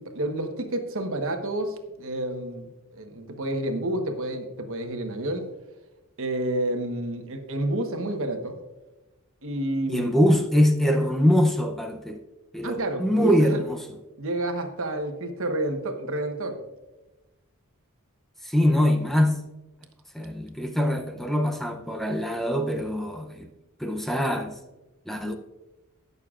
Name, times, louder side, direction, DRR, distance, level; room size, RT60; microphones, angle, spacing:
voice 1, 0.0-5.5 6.2-8.6 9.4-10.1 12.6-13.6 14.2-16.6, right 1 dB, 65° right, 1.2 m, -29 dB
voice 2, 9.9-12.2 12.5-13.8 18.4-19.4 20.1-23.5 23.8-24.6 25.1-25.4, equal, ahead, 0.6 m, -23 dB
20.0 x 6.7 x 2.5 m
head